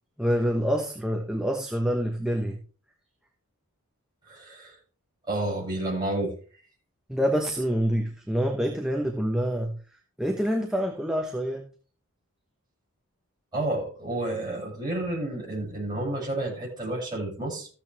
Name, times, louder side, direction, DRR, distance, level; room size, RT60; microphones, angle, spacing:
voice 1, 0.2-2.6 7.1-9.8 10.2-11.6, equal, 5° right, 2 dB, 1.1 m, -26 dB
voice 2, 4.2-4.8 5.3-6.3 13.5-17.7, right 1 dB, 20° right, -6 dB, 7.7 m, -30 dB
14.5 x 9.0 x 3.5 m, 0.39 s
head